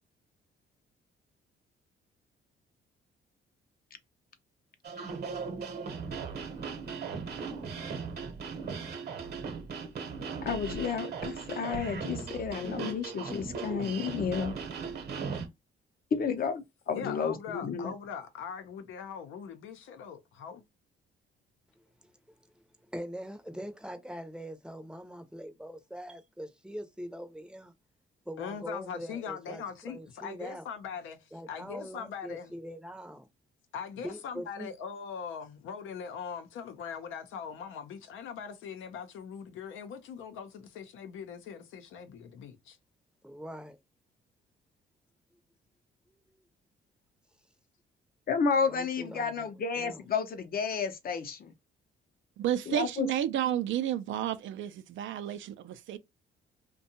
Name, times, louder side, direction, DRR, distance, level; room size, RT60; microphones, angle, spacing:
sound 1, 4.8-15.5, right 5 dB, 55° right, 0.9 m, -38 dB
voice 1, 10.4-14.5 16.1-17.9 48.3-51.5 52.7-53.1, left 6 dB, 50° left, 0.6 m, -31 dB
voice 2, 16.9-20.6 28.4-32.5 33.7-42.8, left 7 dB, 85° left, 0.7 m, -41 dB
voice 3, 21.8-27.7 28.2-30.7 31.3-33.3 34.0-34.7 43.2-43.8 48.7-50.1, equal, 5° right, 0.6 m, -43 dB
voice 4, 52.4-56.0, right 11 dB, 75° right, 0.4 m, -31 dB
2.6 x 2.2 x 2.7 m
cardioid pair, 90°, 20 cm